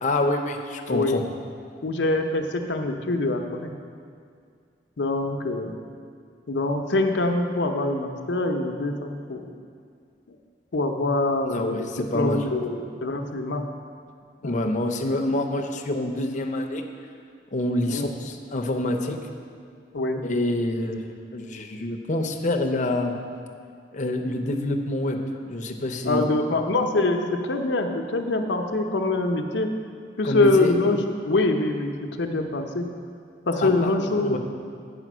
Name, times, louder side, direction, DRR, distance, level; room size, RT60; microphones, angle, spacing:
voice 1, 0.0-1.2 11.4-12.4 14.4-16.8 17.5-19.2 20.2-23.2 23.9-25.2 25.5-26.4 30.2-30.7 33.6-33.9 34.2-34.4, left 1 dB, 45° left, 4 dB, 0.6 m, -27 dB
voice 2, 0.9-1.2 1.8-3.7 5.0-5.8 6.5-9.5 10.7-13.6 14.4-14.7 17.9-18.1 19.9-20.2 26.0-29.7 30.2-32.9 33.5-34.4, left 2 dB, 80° left, 4 dB, 0.7 m, -24 dB
9.0 x 5.0 x 6.1 m, 2.2 s
head